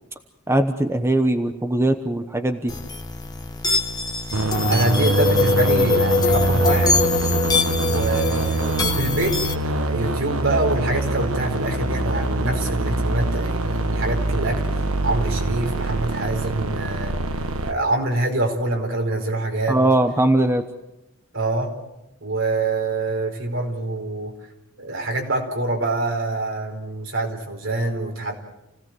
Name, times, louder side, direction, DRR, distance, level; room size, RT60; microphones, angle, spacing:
voice 1, 0.5-2.7 19.7-20.6, right 1 dB, 10° right, 6 dB, 1.0 m, -20 dB
sound 1, 2.7-9.5, left 4 dB, 20° left, 1.2 m, -23 dB
sound 2, 4.3-17.7, right 2 dB, 85° right, 1.2 m, -24 dB
voice 2, 4.7-7.0 7.8-17.1 17.6-19.8 21.3-21.8 22.2-24.3 24.8-28.3, right 2 dB, 65° right, 2 dB, 4.9 m, -25 dB
29.0 x 17.5 x 7.7 m, 0.94 s
head